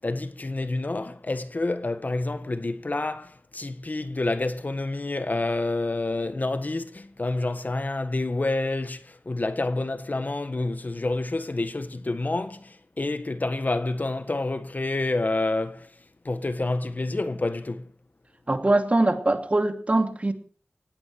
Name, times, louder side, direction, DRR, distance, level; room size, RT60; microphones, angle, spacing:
voice 1, 0.0-17.9, left 2 dB, 45° left, 1.6 m, -28 dB
voice 2, 18.5-20.3, right 2 dB, 35° right, 2.8 m, -22 dB
18.5 x 16.5 x 4.7 m
wide cardioid pair, 55°, 4 cm